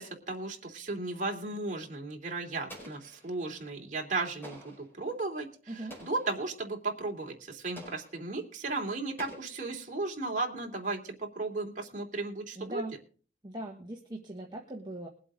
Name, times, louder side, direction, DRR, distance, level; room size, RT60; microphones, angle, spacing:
voice 1, 0.0-12.8, right 3 dB, 40° right, 1 dB, 3.0 m, -35 dB
Explosion, 2.7-3.6 4.4-5.0 5.9-6.4 7.8-8.3 9.2-10.1, equal, 10° left, 5.0 m, -49 dB
voice 2, 5.7-6.0 12.6-12.9 13.4-15.1, right 1 dB, 25° right, 0 dB, 1.5 m, -40 dB
22.0 x 8.0 x 3.8 m, 0.41 s
head